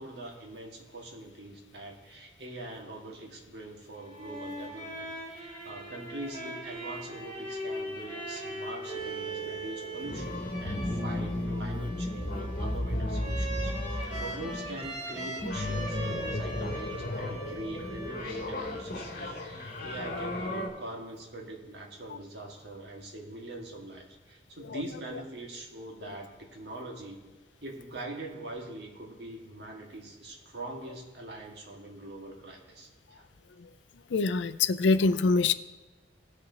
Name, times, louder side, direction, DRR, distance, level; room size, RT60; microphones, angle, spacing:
voice 1, 0.0-27.2 27.6-33.2, right 2 dB, 65° right, 0 dB, 1.8 m, -43 dB
sound 1, 3.9-18.6, right 1 dB, 30° right, 3.0 m, -40 dB
sound 2, 9.0-20.7, left 1 dB, 55° left, 2.1 m, -34 dB
voice 2, 34.1-35.5, left 4 dB, 85° left, 13 dB, 0.4 m, -24 dB
18.0 x 6.6 x 2.9 m, 1.2 s
head